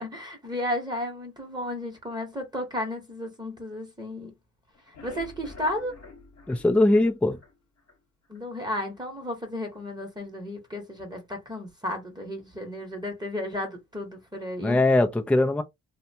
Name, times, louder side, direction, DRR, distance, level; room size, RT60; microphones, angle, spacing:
voice 1, 0.0-4.3 5.0-5.9 8.3-14.8, left 1 dB, 15° right, 0.9 m, -33 dB
sound 1, 4.7-8.0 8.3-8.4 8.8-8.9 9.3-9.4, left 3 dB, 60° left, 1.0 m, -48 dB
voice 2, 6.5-7.4 14.6-15.6, left 2 dB, 5° left, 0.4 m, -21 dB
2.7 x 2.2 x 2.6 m
cardioid pair, 90°, 30 cm